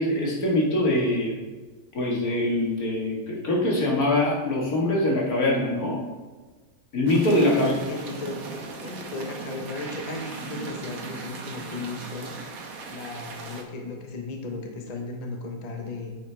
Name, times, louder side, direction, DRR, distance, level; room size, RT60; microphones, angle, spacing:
voice 1, 0.0-1.4 1.9-6.0 6.9-7.7, left 1 dB, 75° left, -3 dB, 2.3 m, -23 dB
sound 1, 7.0-13.6, right 4 dB, 70° right, 1.4 m, -38 dB
voice 2, 7.5-8.4 8.8-12.4 12.9-16.2, left 3 dB, 30° left, 2 dB, 1.0 m, -35 dB
9.3 x 7.6 x 3.4 m, 1.3 s
omnidirectional pair, 1.6 m